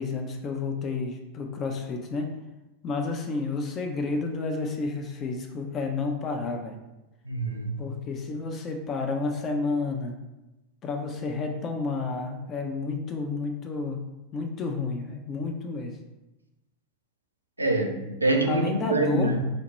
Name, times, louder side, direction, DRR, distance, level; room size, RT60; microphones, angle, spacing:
voice 1, 0.0-2.4 2.8-6.8 7.8-10.2 10.8-14.0 14.3-16.0 18.4-19.3, left 3 dB, 30° left, 3 dB, 0.4 m, -30 dB
voice 2, 7.3-8.0 17.6-19.4, right 2 dB, 85° right, 3 dB, 0.4 m, -26 dB
4.1 x 2.1 x 3.0 m, 1.0 s
figure-of-eight pair, 90°, 0 cm